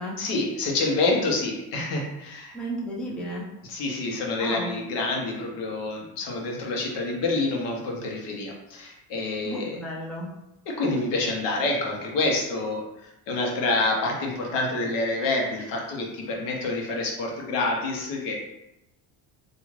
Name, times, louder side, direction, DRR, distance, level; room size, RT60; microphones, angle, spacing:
voice 1, 0.2-2.6 3.6-9.8 10.7-18.3, left 2 dB, 80° left, 0 dB, 0.9 m, -27 dB
voice 2, 2.5-3.5 4.4-4.7 9.5-10.3, right 1 dB, ahead, -4 dB, 0.4 m, -33 dB
2.4 x 2.4 x 3.1 m, 0.88 s
cardioid pair, 125°, 42 cm